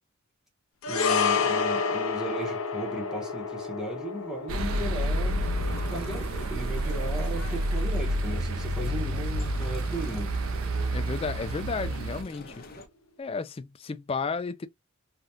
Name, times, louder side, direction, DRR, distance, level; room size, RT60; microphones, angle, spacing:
sound 1, 0.8-9.3 9.6-9.8, left 5 dB, 75° left, 0.6 m, -31 dB
voice 1, 0.9-5.5 5.9-10.3, right 1 dB, 5° right, 0.9 m, -36 dB
sound 2, 4.5-12.2, right 1 dB, 75° right, 0.6 m, -29 dB
sound 3, 5.4-12.9, left 1 dB, 45° left, 0.8 m, -45 dB
voice 2, 10.9-12.6 13.2-14.7, left 4 dB, 25° left, 0.3 m, -33 dB
3.4 x 2.4 x 2.6 m
head